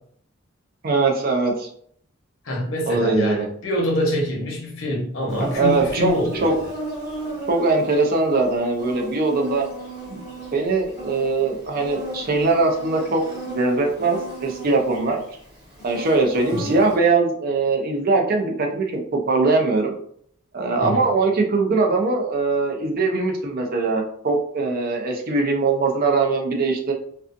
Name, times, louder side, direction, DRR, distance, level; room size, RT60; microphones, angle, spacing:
voice 1, 0.8-1.7 2.9-3.5 5.4-6.5 7.5-9.7 10.1-10.2 10.5-15.2 15.8-19.9 20.5-26.9, right 3 dB, 45° right, 2 dB, 0.5 m, -21 dB
voice 2, 2.4-6.5 16.5-16.7 20.8-21.0, left 1 dB, 80° left, -1 dB, 0.9 m, -25 dB
Insect, 5.3-17.0, right 1 dB, 5° right, 1.2 m, -36 dB
2.4 x 2.3 x 2.5 m, 0.64 s
head